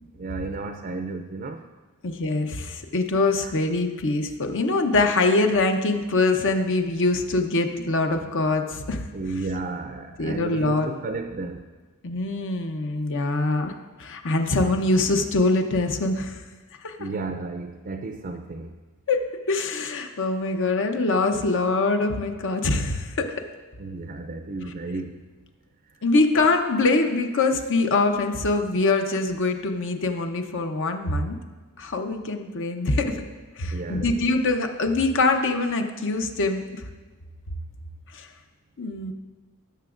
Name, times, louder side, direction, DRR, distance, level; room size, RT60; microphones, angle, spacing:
voice 1, 0.1-1.6 3.4-3.6 9.1-11.7 17.0-18.8 23.8-25.3 33.6-34.3, right 3 dB, 40° right, 6 dB, 0.5 m, -33 dB
voice 2, 2.0-9.0 10.2-10.9 12.0-16.4 16.8-17.0 19.1-23.3 26.0-31.4 31.8-33.2 33.6-36.8 38.1-38.3 38.8-39.1, left 3 dB, 60° left, 5 dB, 0.8 m, -24 dB
17.5 x 6.9 x 2.5 m, 1.3 s
head